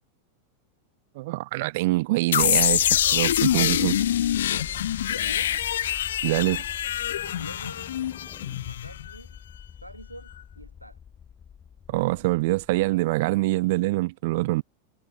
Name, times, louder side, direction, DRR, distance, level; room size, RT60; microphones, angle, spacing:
voice 1, 1.1-4.0 6.2-6.7 11.9-14.6, right 21 dB, 50° right, 1.0 m, -25 dB
sound 1, 2.3-9.1, left 11 dB, 60° left, 1.0 m, -25 dB
sound 2, 2.4-13.0, left 8 dB, 20° left, 2.1 m, -44 dB
voice 2, 3.6-4.2 4.5-5.5 7.2-7.9 8.6-9.4 9.8-11.0, right 1 dB, 90° right, 3.6 m, -46 dB
figure-of-eight pair, 90°, 0 cm